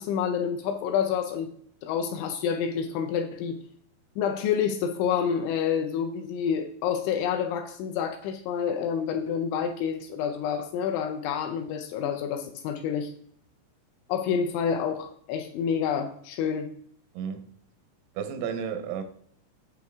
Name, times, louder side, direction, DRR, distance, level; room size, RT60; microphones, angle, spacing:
voice 1, 0.0-1.5 1.8-3.6 4.2-13.1 14.1-16.7, left 7 dB, 80° left, 2.8 m, -28 dB
voice 2, 17.2-17.5 18.2-19.0, right 7 dB, 85° right, 3.6 m, -32 dB
9.9 x 7.7 x 3.5 m
omnidirectional pair, 5.8 m